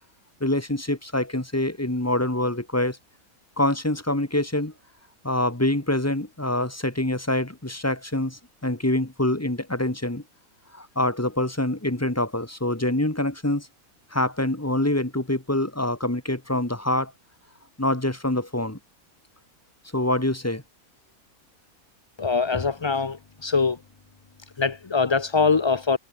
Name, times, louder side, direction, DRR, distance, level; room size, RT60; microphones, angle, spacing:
voice 1, 0.4-3.0 3.6-4.7 5.2-10.2 10.7-13.7 14.1-17.1 17.8-18.8 19.9-20.6, left 1 dB, 10° left, 1.9 m, -25 dB
voice 2, 22.2-23.8 24.6-26.0, left 4 dB, 35° left, 0.5 m, -23 dB
omnidirectional pair, 1.6 m